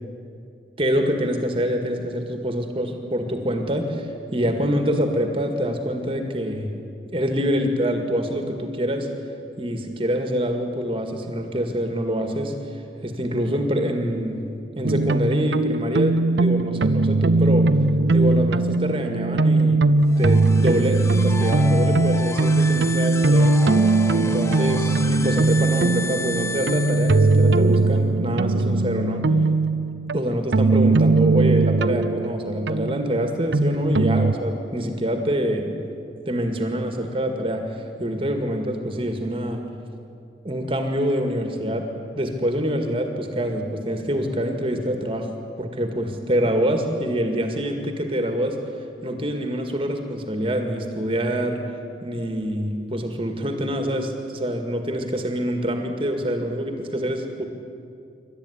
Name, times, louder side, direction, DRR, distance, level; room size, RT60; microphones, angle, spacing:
voice 1, 0.8-4.1 4.3-6.7 7.1-9.1 9.6-12.5 13.0-14.5 14.8-17.7 18.1-19.8 20.2-23.6 24.1-29.2 30.1-35.7 36.3-37.7 38.0-39.6 40.4-41.9 42.2-45.3 45.6-48.6 49.0-51.6 52.0-57.4, equal, 30° right, 5 dB, 2.0 m, -25 dB
sound 1, 14.8-34.3, right 3 dB, 90° right, 0.6 m, -20 dB
sound 2, 20.0-27.7, left 3 dB, 15° left, 0.7 m, -33 dB
26.5 x 13.0 x 9.8 m, 2.6 s
head